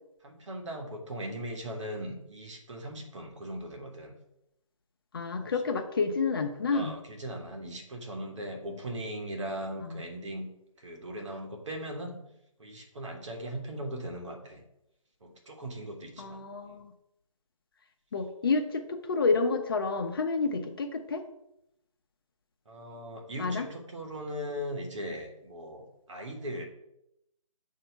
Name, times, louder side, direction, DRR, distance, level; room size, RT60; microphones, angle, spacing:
voice 1, 0.2-4.1 5.4-5.5 6.7-10.5 10.8-12.2 12.6-14.6 15.2-16.4 16.7-16.8 22.7-26.6, equal, 60° right, 2 dB, 1.4 m, -39 dB
voice 2, 5.1-6.9 9.8-10.0 16.2-16.9 18.1-21.2 23.4-23.7, left 4 dB, 40° left, 5 dB, 0.7 m, -29 dB
7.6 x 2.8 x 4.6 m, 0.83 s
hypercardioid pair, 160°, 18 cm